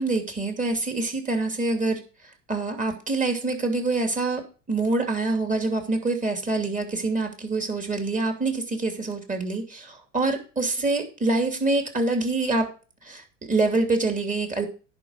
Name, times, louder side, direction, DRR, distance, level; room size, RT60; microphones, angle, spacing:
voice 1, 0.0-2.0 2.5-12.7 13.0-14.7, right 3 dB, 20° right, 4 dB, 2.7 m, -26 dB
10.5 x 4.6 x 6.6 m, 0.35 s
hypercardioid pair, 80°, 38 cm